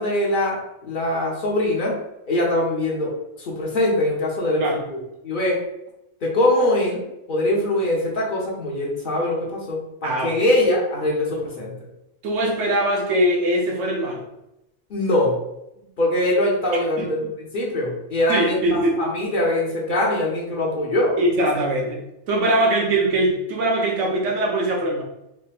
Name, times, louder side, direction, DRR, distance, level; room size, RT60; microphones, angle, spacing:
voice 1, 0.0-3.1 3.4-5.0 5.2-5.6 6.2-7.0 7.3-11.7 14.9-15.4 16.0-21.2, left 1 dB, 50° left, -3 dB, 0.9 m, -22 dB
voice 2, 10.0-10.4 12.2-14.2 17.0-17.1 18.3-19.0 21.2-25.0, right 1 dB, 90° right, 0 dB, 1.0 m, -22 dB
3.4 x 2.7 x 2.4 m, 0.88 s
omnidirectional pair, 1.2 m